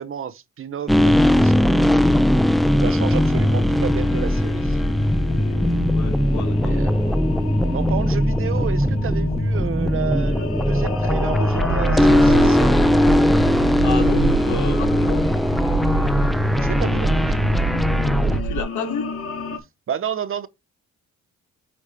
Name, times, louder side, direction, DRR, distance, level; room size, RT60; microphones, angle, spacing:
voice 1, 0.0-1.9 2.8-4.8 6.6-7.0 7.7-12.7 16.6-17.4 18.2-18.5 19.9-20.5, right 8 dB, 45° right, 0.8 m, -31 dB
sound 1, 0.9-18.4, left 1 dB, ahead, 0.5 m, -19 dB
sound 2, 3.2-19.6, left 5 dB, 45° left, 1.5 m, -34 dB
voice 2, 5.3-6.8 13.8-15.3 18.3-19.1, left 6 dB, 80° left, 2.0 m, -31 dB
sound 3, 11.6-18.6, right 6 dB, 80° right, 2.6 m, -28 dB
8.4 x 3.1 x 4.7 m
cardioid pair, 90°, 30 cm